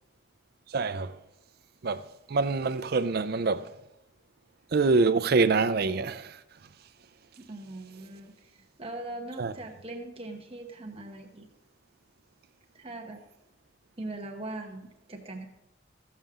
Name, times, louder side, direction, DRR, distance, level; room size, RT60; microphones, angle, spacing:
voice 1, 0.7-1.1 1.8-2.0 2.3-3.6 4.7-6.4 9.4-9.5, right 4 dB, 50° right, 0.5 m, -25 dB
voice 2, 7.4-8.3 8.8-11.5 12.7-13.2 14.0-15.5, right 2 dB, 30° right, 1.0 m, -40 dB
16.0 x 7.3 x 3.7 m
head